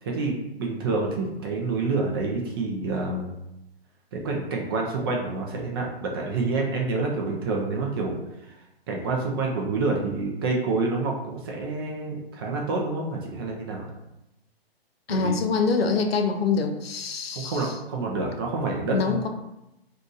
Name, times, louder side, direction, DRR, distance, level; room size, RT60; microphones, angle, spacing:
voice 1, 0.0-3.3 4.1-8.2 8.9-13.8 15.1-15.3 17.3-19.2, right 3 dB, 25° right, -1 dB, 0.4 m, -28 dB
voice 2, 15.1-17.7 18.9-19.3, left 5 dB, 75° left, 4 dB, 0.7 m, -25 dB
2.7 x 2.5 x 3.7 m, 0.90 s
hypercardioid pair, 135°, 31 cm